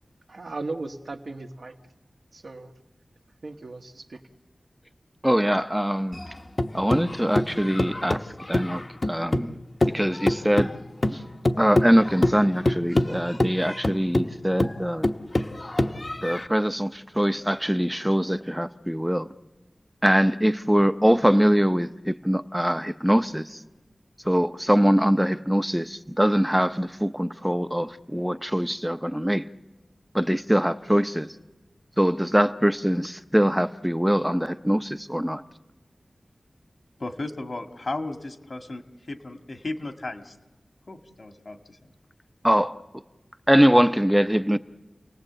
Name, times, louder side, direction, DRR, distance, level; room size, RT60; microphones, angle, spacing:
voice 1, 0.3-1.7 2.3-2.7 3.4-4.2, right 3 dB, 80° right, 1.6 m, -36 dB
voice 2, 5.2-6.2 6.7-9.6 9.9-10.7 11.1-11.2 11.6-15.1 16.2-19.3 20.0-23.6 24.2-25.8 26.2-29.5 30.1-31.3 32.0-35.4 42.4-42.8 43.5-44.6, equal, 5° right, 0.7 m, -23 dB
sound 1, 6.1-9.5 9.8-16.5, left 1 dB, 40° left, 1.0 m, -25 dB
voice 3, 37.0-38.8 39.1-40.4 40.9-41.8, left 2 dB, 60° left, 1.8 m, -35 dB
30.0 x 18.5 x 7.9 m
wide cardioid pair, 75°, 0 cm